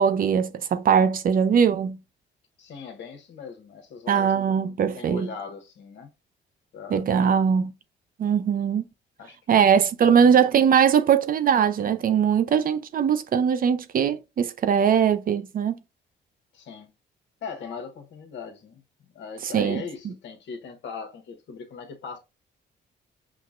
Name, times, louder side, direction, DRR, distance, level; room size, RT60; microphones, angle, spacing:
voice 1, 0.0-2.0 4.1-5.3 6.9-7.7 8.2-8.8 9.5-15.7 19.4-19.8, right 7 dB, 45° right, 0.4 m, -21 dB
voice 2, 2.6-6.1 6.7-7.3 9.2-10.4 16.5-16.9 17.4-18.8 19.1-22.2, left 5 dB, 70° left, 0.9 m, -40 dB
5.9 x 2.1 x 2.4 m
cardioid pair, 90°, 20 cm